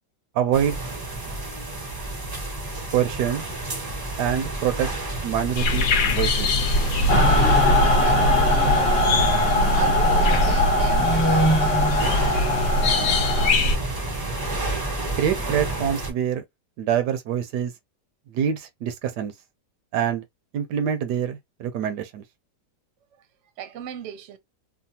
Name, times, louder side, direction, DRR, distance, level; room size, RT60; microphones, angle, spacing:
voice 1, 0.3-0.8 2.9-3.4 4.2-4.9 5.2-6.5 15.2-16.4 16.8-17.7 18.3-19.3 19.9-20.2 20.5-22.2, right 9 dB, 75° right, 1.1 m, -25 dB
sound 1, 0.5-16.1, right 2 dB, 30° right, 0.4 m, -31 dB
sound 2, 5.6-13.8, left 1 dB, 65° left, 0.9 m, -23 dB
Mechanical fan, 7.1-13.5, left 1 dB, 30° left, 0.8 m, -21 dB
voice 2, 7.9-12.3 23.6-24.4, right 9 dB, 60° right, 0.8 m, -36 dB
3.3 x 2.1 x 2.7 m
omnidirectional pair, 1.9 m